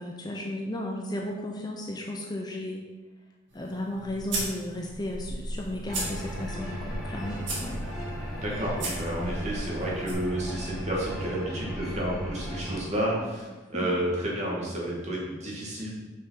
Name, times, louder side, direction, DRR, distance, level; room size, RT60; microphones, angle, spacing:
voice 1, 0.0-2.9 3.5-7.8 9.2-9.7 12.9-13.9, left 1 dB, 20° left, 0 dB, 0.7 m, -35 dB
sound 1, 3.5-10.1, right 2 dB, 65° right, 2.5 m, -37 dB
sound 2, 5.9-12.8, equal, 5° right, 2.1 m, -36 dB
voice 2, 8.4-13.1 13.7-15.9, right 1 dB, 35° right, -4 dB, 2.3 m, -31 dB
6.8 x 5.7 x 5.9 m, 1.2 s
head